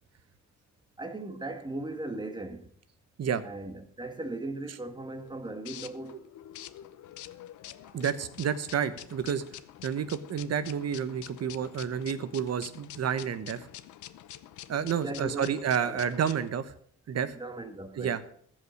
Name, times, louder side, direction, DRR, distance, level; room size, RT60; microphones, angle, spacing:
voice 1, 1.0-2.7 3.4-6.2 15.0-16.2 17.4-18.2, right 2 dB, 15° right, 1.8 m, -38 dB
sound 1, 4.9-16.5, left 12 dB, 75° left, 0.8 m, -47 dB
voice 2, 7.9-9.4 9.8-13.7 14.7-16.7 17.1-17.4 18.0-18.2, right 8 dB, 55° right, 1.3 m, -30 dB
15.0 x 5.6 x 6.5 m
cardioid pair, 90°, 30 cm